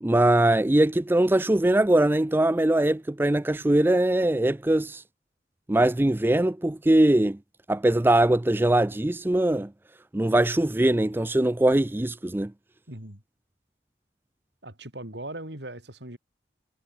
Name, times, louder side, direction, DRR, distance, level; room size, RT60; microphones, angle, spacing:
voice 1, 0.0-5.0 5.7-7.4 7.7-9.7 10.1-12.5, right 1 dB, 10° right, 0.4 m, -21 dB
voice 2, 12.9-13.2 14.6-16.2, right 1 dB, 70° right, 7.3 m, -39 dB
head